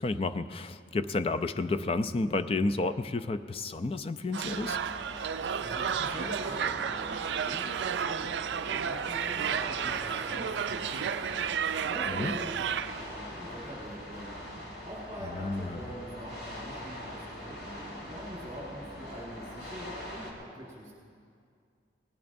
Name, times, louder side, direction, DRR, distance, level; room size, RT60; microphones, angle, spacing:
voice 1, 0.0-4.8 12.1-12.3 15.2-15.8, left 3 dB, 30° left, 11 dB, 0.4 m, -31 dB
sound 1, 4.3-13.1, right 8 dB, 80° right, 0.4 m, -32 dB
sound 2, 4.4-20.3, left 1 dB, 80° left, 2.8 m, -43 dB
voice 2, 5.6-14.4 14.8-20.9, equal, 20° right, -6 dB, 4.2 m, -43 dB
19.5 x 18.0 x 2.6 m, 2.2 s
head